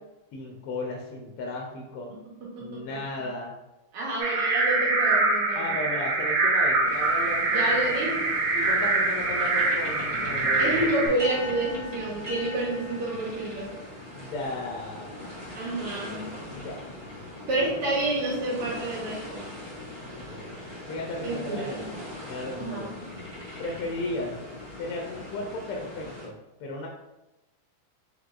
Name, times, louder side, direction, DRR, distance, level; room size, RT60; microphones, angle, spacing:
voice 1, 0.3-2.1 2.6-3.5 5.5-8.2 8.6-10.7 14.1-15.5 16.5-16.8 17.1-17.2 20.2-20.6 20.9-21.9 22.2-22.9 23.6-24.3 24.8-26.9, left 2 dB, 90° left, 0 dB, 1.5 m, -35 dB
voice 2, 3.9-5.8 7.5-8.1 10.6-13.7 15.6-16.3 17.5-19.5 21.2-21.9 22.6-22.9, right 2 dB, 85° right, -5 dB, 2.2 m, -29 dB
sound 1, 4.2-11.1, right 3 dB, 65° right, 1.4 m, -24 dB
sound 2, 6.8-26.3, left 1 dB, 20° right, 0.9 m, -40 dB
5.0 x 3.2 x 2.4 m, 0.99 s
omnidirectional pair, 2.4 m